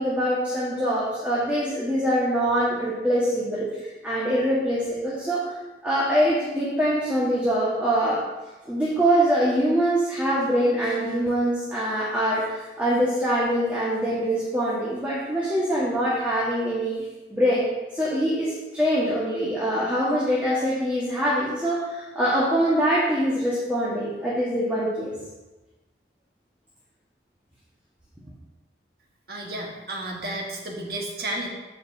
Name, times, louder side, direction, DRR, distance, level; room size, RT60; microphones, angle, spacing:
voice 1, 0.0-3.6 4.0-5.4 5.8-8.2 8.6-16.9 17.3-17.6 17.9-25.1, equal, 10° right, -8 dB, 1.5 m, -24 dB
voice 2, 29.3-31.5, right 1 dB, 60° right, 0 dB, 1.5 m, -32 dB
15.0 x 5.2 x 2.7 m, 1.1 s
head